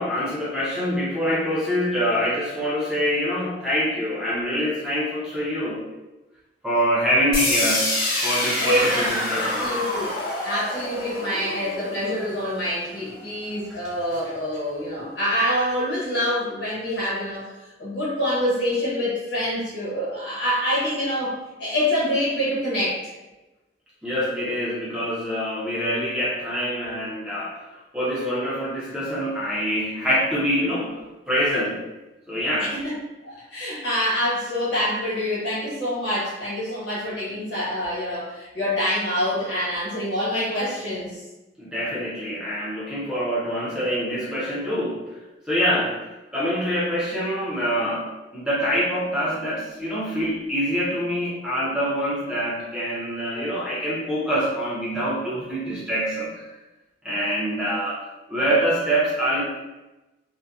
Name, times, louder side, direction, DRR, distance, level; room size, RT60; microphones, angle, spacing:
voice 1, 0.0-5.8 6.6-7.9 8.2-9.7 24.0-27.6 27.9-31.0 31.3-31.8 32.3-32.7 41.6-45.0 45.5-45.9 46.3-48.1 48.3-56.5 57.0-58.0 58.3-59.4, equal, 5° right, -8 dB, 0.6 m, -25 dB
sound 1, 7.3-13.3, left 1 dB, 55° left, 0.6 m, -27 dB
voice 2, 8.6-10.1 10.4-17.5 17.8-23.0 32.6-33.0 33.2-41.2, equal, 80° left, -7 dB, 1.1 m, -26 dB
2.6 x 2.1 x 2.3 m, 1.1 s
head